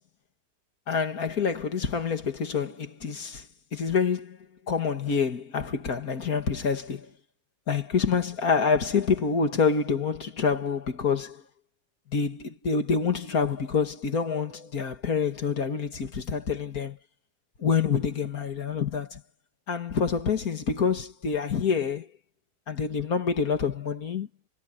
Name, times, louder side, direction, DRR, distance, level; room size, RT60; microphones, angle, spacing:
voice 1, 0.9-3.5 3.7-4.4 4.7-7.1 7.7-11.4 12.1-17.0 17.6-19.2 19.7-22.1 22.7-24.3, left 5 dB, 65° left, 2.4 m, -27 dB
omnidirectional pair, 1.7 m